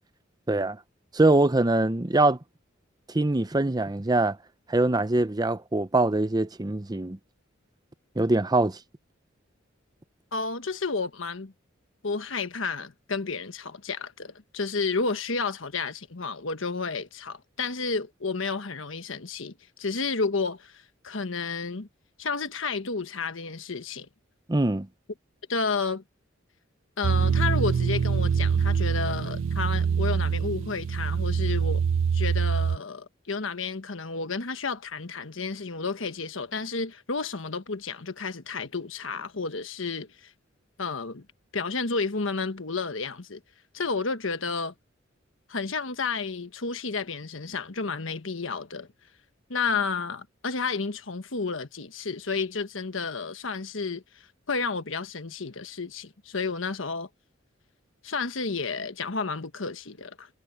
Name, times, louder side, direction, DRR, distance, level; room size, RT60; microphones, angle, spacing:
voice 1, 1.1-2.4 3.1-4.4 4.7-7.2 8.2-8.8 24.5-24.9, right 2 dB, 20° right, 0.7 m, -23 dB
voice 2, 10.3-11.5 12.0-21.9 22.2-24.1 25.5-26.0 27.0-31.8 32.1-40.3 40.8-41.2 41.5-43.4 43.7-44.7 45.5-48.9 49.5-57.1 58.0-60.3, left 4 dB, 75° left, 1.3 m, -31 dB
sound 1, 27.0-32.8, right 6 dB, 70° right, 0.4 m, -25 dB
head